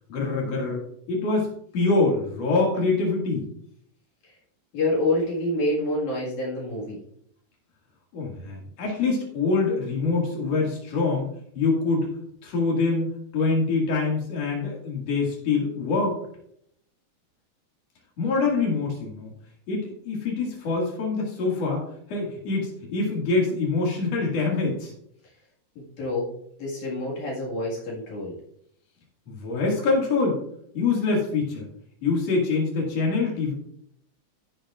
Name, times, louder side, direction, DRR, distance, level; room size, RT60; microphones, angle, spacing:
voice 1, 0.1-0.8 1.1-1.5 1.7-3.5 8.1-11.3 11.5-12.1 12.4-16.2 18.2-19.3 19.7-24.9 29.3-30.4 30.7-31.7 32.0-33.5, left 3 dB, 60° left, -2 dB, 3.2 m, -25 dB
voice 2, 4.7-7.0 25.8-26.3 26.6-28.3, left 1 dB, 75° left, -5 dB, 3.3 m, -27 dB
16.0 x 6.3 x 2.4 m, 0.70 s
omnidirectional pair, 3.4 m